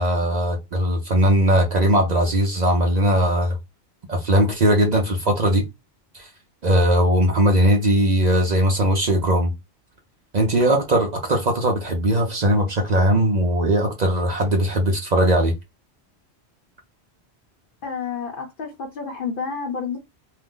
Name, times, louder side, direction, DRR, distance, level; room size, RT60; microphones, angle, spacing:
voice 1, 0.0-3.6 4.1-5.6 6.1-6.3 6.6-9.5 10.3-15.5, right 1 dB, 45° right, 0.6 m, -19 dB
voice 2, 17.8-20.0, left 5 dB, 55° left, 0.8 m, -29 dB
2.7 x 2.1 x 3.6 m
omnidirectional pair, 1.1 m